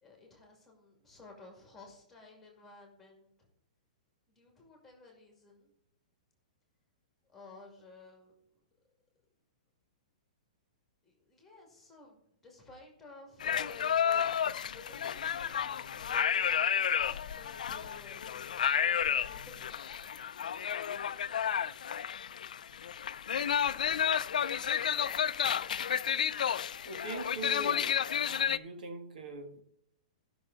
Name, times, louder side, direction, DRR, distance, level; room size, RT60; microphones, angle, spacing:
voice 1, 0.0-3.5 4.3-5.7 7.3-8.3 11.0-14.0 14.6-20.2, left 3 dB, 5° left, 1 dB, 2.3 m, -55 dB
sound 1, 13.4-28.6, left 8 dB, 85° left, 0.4 m, -31 dB
voice 2, 26.4-28.0 28.3-29.6, right 2 dB, 80° right, 5 dB, 1.9 m, -42 dB
15.5 x 6.0 x 4.0 m, 0.76 s
hypercardioid pair, 170°, 4 cm